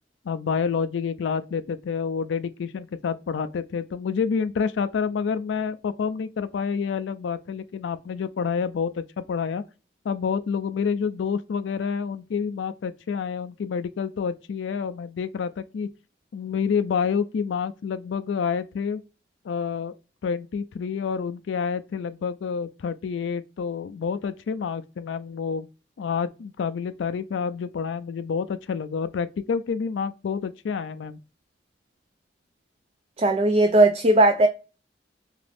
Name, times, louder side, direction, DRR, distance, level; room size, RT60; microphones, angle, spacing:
voice 1, 0.3-9.6 10.0-15.9 16.3-19.0 19.4-19.9 20.2-25.7 26.0-31.2, left 6 dB, 85° left, 0.3 m, -28 dB
voice 2, 33.2-34.5, right 2 dB, 35° right, 0.3 m, -17 dB
2.9 x 2.5 x 3.3 m
head